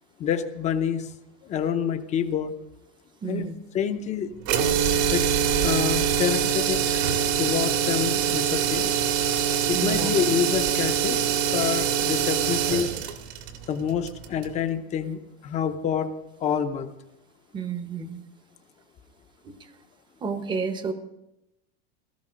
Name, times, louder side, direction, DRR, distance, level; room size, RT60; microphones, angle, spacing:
voice 1, 0.2-1.1 1.4-2.5 3.3-3.5 3.7-4.3 5.1-5.3 5.6-7.0 7.4-9.0 9.7-12.9 13.7-16.1 16.4-16.9, left 8 dB, 20° left, 8 dB, 0.7 m, -27 dB
voice 2, 3.2-3.5 9.7-10.1 17.5-18.2 19.4-19.7 20.2-20.9, right 5 dB, 15° right, 10 dB, 0.8 m, -31 dB
sound 1, 4.4-14.5, right 8 dB, 75° right, 2.1 m, -24 dB
17.5 x 14.0 x 5.1 m, 0.92 s
supercardioid pair, 170°, 32 cm